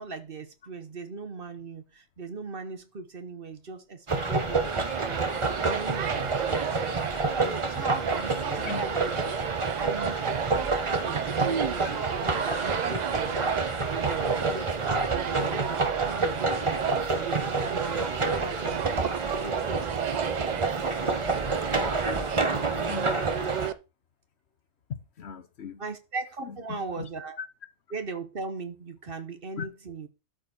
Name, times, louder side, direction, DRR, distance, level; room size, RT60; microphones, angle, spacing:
voice 1, 0.0-5.3 5.6-6.6 7.3-9.4 9.8-16.8 17.1-20.9 25.8-27.4 27.9-30.1, right 4 dB, 45° right, 1.2 m, -39 dB
sound 1, 4.1-23.7, right 3 dB, 25° right, 1.0 m, -29 dB
sound 2, 4.6-23.7, right 8 dB, 75° right, 0.4 m, -33 dB
voice 2, 22.7-23.2 24.9-25.8 26.4-27.0 29.6-29.7, left 6 dB, 60° left, 1.0 m, -38 dB
12.5 x 5.1 x 4.3 m
omnidirectional pair, 1.4 m